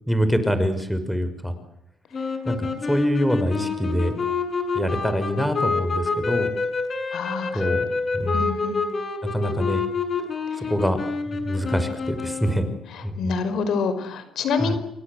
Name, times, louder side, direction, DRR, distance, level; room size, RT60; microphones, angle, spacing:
voice 1, 0.0-1.5 2.4-4.2 4.7-6.5 7.5-7.9 8.1-8.5 9.3-9.8 10.6-11.0 11.3-12.7 13.0-13.4 14.6-14.8, equal, ahead, 9 dB, 6.1 m, -25 dB
sound 1, 2.1-12.9, left 4 dB, 40° left, 6.8 m, -27 dB
voice 2, 7.1-7.7 8.3-8.8 12.9-14.8, left 5 dB, 75° left, 11 dB, 5.3 m, -27 dB
29.0 x 24.0 x 8.2 m, 0.81 s
cardioid pair, 90°, 0 cm